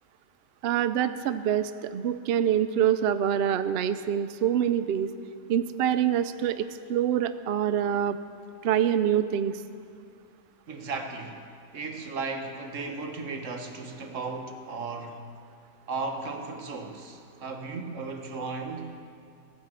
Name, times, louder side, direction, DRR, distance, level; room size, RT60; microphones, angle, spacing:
voice 1, 0.6-5.1 5.5-8.2 8.6-9.6, right 9 dB, 75° right, 12 dB, 0.5 m, -25 dB
voice 2, 10.7-11.4 11.7-15.2 15.9-19.0, right 3 dB, 55° right, 5 dB, 1.5 m, -35 dB
15.0 x 9.7 x 7.6 m, 2.4 s
omnidirectional pair, 1.6 m